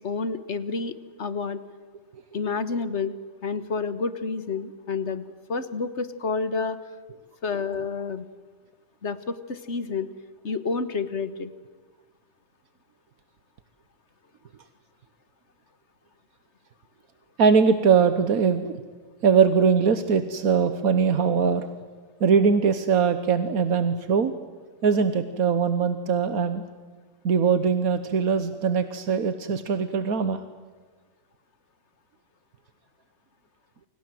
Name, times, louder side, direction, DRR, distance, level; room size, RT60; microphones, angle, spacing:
voice 1, 0.0-1.6 2.3-3.1 3.4-6.8 7.4-8.3 9.0-10.1 10.4-11.5, left 4 dB, 55° left, 13 dB, 1.6 m, -29 dB
voice 2, 17.4-18.7 19.2-21.6 22.2-24.3 24.8-26.6 27.2-30.4, right 6 dB, 85° right, 10 dB, 1.6 m, -21 dB
29.5 x 26.0 x 7.8 m, 1.3 s
omnidirectional pair, 1.5 m